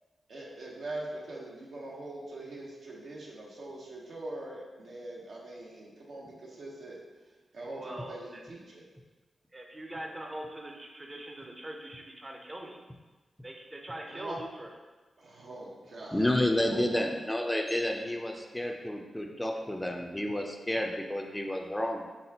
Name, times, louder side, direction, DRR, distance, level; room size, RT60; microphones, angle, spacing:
voice 1, 0.3-8.8 14.1-14.4 15.2-16.3 16.6-17.0, right 2 dB, 75° right, -4 dB, 0.9 m, -42 dB
voice 2, 7.7-8.4 9.5-12.8 13.4-14.7, right 1 dB, 30° right, 1 dB, 0.6 m, -42 dB
voice 3, 16.1-22.1, left 1 dB, 15° left, 3 dB, 0.4 m, -30 dB
4.1 x 3.6 x 2.8 m, 1.3 s
cardioid pair, 50°, 0 cm